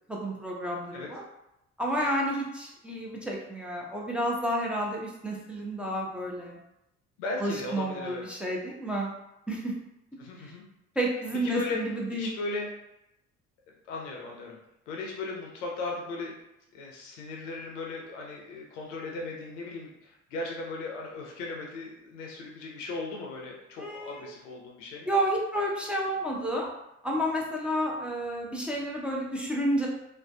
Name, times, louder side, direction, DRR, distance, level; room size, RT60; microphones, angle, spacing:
voice 1, 0.1-1.2 1.8-6.6 7.4-9.1 9.5-9.7 11.0-12.3 23.8-24.3 25.1-26.7 27.0-29.9, right 1 dB, 5° right, -3 dB, 0.5 m, -30 dB
voice 2, 7.2-8.2 10.2-10.6 11.4-11.8 12.2-12.7 13.9-14.6 14.9-16.3 16.7-25.1, left 3 dB, 80° left, -1 dB, 0.6 m, -37 dB
2.5 x 2.2 x 2.3 m, 0.86 s
figure-of-eight pair, 45°, 36 cm